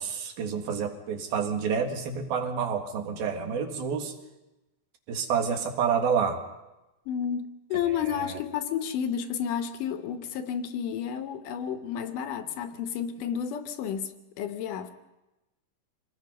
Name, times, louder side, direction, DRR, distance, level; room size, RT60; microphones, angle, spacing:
voice 1, 0.0-4.1 5.1-6.4 7.8-8.4, right 6 dB, 75° right, 3.7 m, -29 dB
voice 2, 7.1-14.9, left 8 dB, 70° left, 2.3 m, -31 dB
26.0 x 19.0 x 5.5 m
omnidirectional pair, 4.4 m